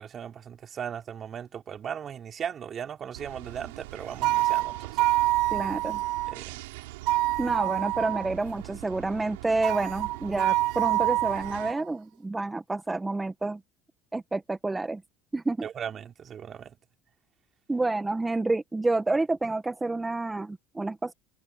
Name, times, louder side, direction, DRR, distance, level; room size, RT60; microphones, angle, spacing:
voice 1, 0.0-5.0 6.3-6.6 15.6-16.7, right 8 dB, 40° right, 3.3 m, -37 dB
sound 1, 3.1-11.7, right 21 dB, 85° right, 6.8 m, -43 dB
sound 2, 4.2-6.3 7.1-8.3 9.6-11.8, right 18 dB, 65° right, 3.0 m, -26 dB
voice 2, 5.5-6.0 7.4-13.6 14.1-15.0 15.3-15.7 17.7-21.1, right 2 dB, 15° right, 1.5 m, -29 dB
supercardioid pair, 85°, 0 cm